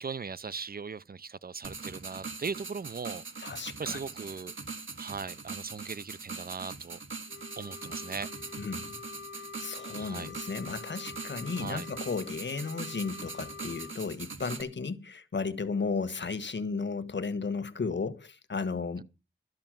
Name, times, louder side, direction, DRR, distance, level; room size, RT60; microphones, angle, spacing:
voice 1, 0.0-3.2 3.8-4.5 5.0-7.0 7.6-8.3 9.9-10.3 11.6-11.9, right 5 dB, 50° right, 0.5 m, -38 dB
sound 1, 1.6-14.6, right 4 dB, 75° right, 2.1 m, -42 dB
voice 2, 3.4-4.0 8.6-9.0 9.6-19.0, left 4 dB, 65° left, 1.3 m, -34 dB
Wind instrument woodwind instrument, 7.3-14.0, left 5 dB, 85° left, 1.4 m, -47 dB
13.0 x 5.6 x 9.0 m
wide cardioid pair, 75°, 20 cm